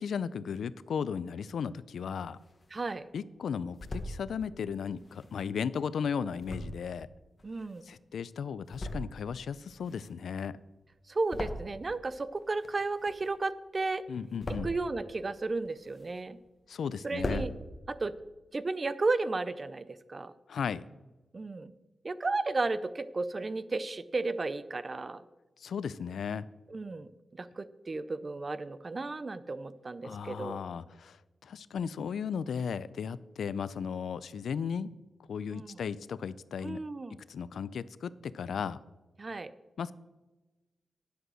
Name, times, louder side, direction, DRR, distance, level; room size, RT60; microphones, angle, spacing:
voice 1, 0.0-2.4 3.1-7.1 7.8-10.6 14.1-14.7 16.7-17.5 20.5-20.9 25.6-26.5 30.0-31.2 31.4-34.9 35.3-36.8 37.3-38.8 39.8-39.9, left 6 dB, 85° left, 17 dB, 0.4 m, -35 dB
sound 1, 2.2-3.0 3.4-4.2 4.9-8.1 8.5-9.3 9.6-12.0 12.3-13.6 13.9-14.9 15.4-16.5 16.8-16.9 17.1-17.5, left 1 dB, 30° left, 1.2 m, -40 dB
voice 2, 2.7-3.1 7.4-7.9 11.1-14.0 14.6-16.4 17.0-17.5 17.9-18.1 18.5-20.3 21.3-21.7 22.0-25.2 26.7-27.1 27.4-30.6 35.5-35.8 36.6-37.2 39.2-39.5, right 3 dB, 30° right, 15 dB, 0.5 m, -33 dB
10.0 x 8.0 x 6.2 m, 1.1 s
wide cardioid pair, 170°, 0 cm